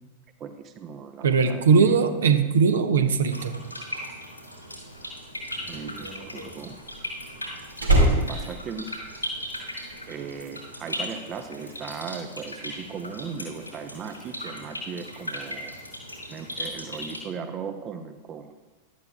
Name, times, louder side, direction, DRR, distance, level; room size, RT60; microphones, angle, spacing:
voice 1, 0.4-2.0 5.7-6.8 8.0-8.8 10.1-15.8 16.3-18.5, right 6 dB, 30° right, 8 dB, 0.7 m, -37 dB
voice 2, 1.2-3.6, right 5 dB, 65° right, 7 dB, 0.9 m, -20 dB
sound 1, 3.3-17.2, equal, 85° left, 2.5 m, -37 dB
Slam, 4.8-9.6 9.9-10.3, right 1 dB, 80° right, 2.2 m, -25 dB
15.5 x 12.0 x 2.4 m, 1.2 s
figure-of-eight pair, 90°, 0 cm